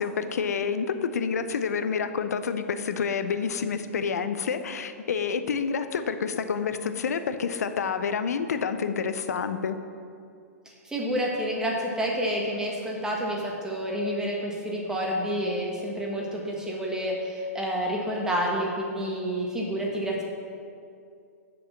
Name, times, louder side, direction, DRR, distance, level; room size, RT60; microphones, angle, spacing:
voice 1, 0.0-9.8, left 6 dB, 75° left, 10 dB, 0.6 m, -28 dB
voice 2, 10.8-20.2, equal, 5° right, -2 dB, 1.5 m, -29 dB
6.6 x 5.3 x 7.1 m, 2.4 s
hypercardioid pair, 120°, 9 cm